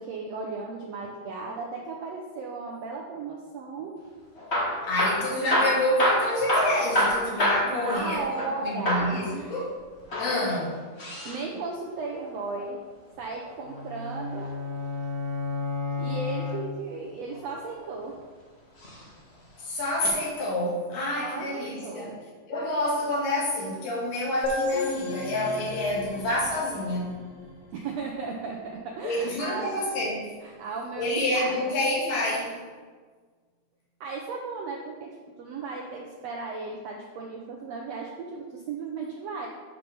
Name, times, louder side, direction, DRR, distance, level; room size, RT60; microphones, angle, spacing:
voice 1, 0.0-3.9 7.7-9.5 11.0-12.8 13.2-14.5 16.0-18.2 21.2-22.1 27.7-30.0 30.4-31.8 34.0-39.5, right 4 dB, 75° right, -1 dB, 1.5 m, -36 dB
Hammer / Drill, 4.3-8.6 8.8-9.2 10.0-11.4 13.2-14.4 16.1-16.6 17.3-18.1 18.8-19.0 19.3-19.4 20.1-20.2, equal, 60° left, 0.6 m, -27 dB
voice 2, 4.8-9.7 10.2-10.8 19.6-22.1 22.5-27.1 29.0-30.3 31.0-32.6, left 1 dB, 80° left, -6 dB, 4.0 m, -28 dB
sound 1, 13.6-17.1, left 4 dB, 45° right, 1.4 m, -32 dB
sound 2, 24.4-28.0, left 2 dB, 45° left, 2.3 m, -33 dB
8.2 x 5.3 x 6.1 m, 1.5 s
omnidirectional pair, 3.9 m